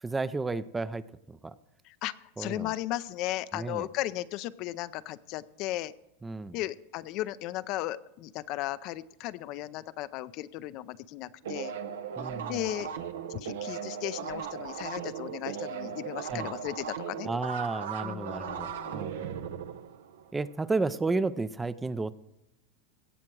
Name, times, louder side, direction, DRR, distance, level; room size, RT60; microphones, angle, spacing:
voice 1, 0.0-1.0 1.3-1.5 2.4-2.7 3.5-3.9 6.2-6.6 12.2-12.7 16.3-16.5 17.3-19.4 20.3-22.1, right 3 dB, 10° right, 15 dB, 0.4 m, -32 dB
voice 2, 1.9-5.9 6.5-11.7 12.5-12.9 13.3-17.3 18.0-19.1, left 15 dB, 50° left, 15 dB, 0.5 m, -36 dB
sound 1, 11.4-20.6, right 8 dB, 90° right, 0.8 m, -37 dB
17.0 x 7.5 x 4.7 m, 0.90 s
supercardioid pair, 125°, 0 cm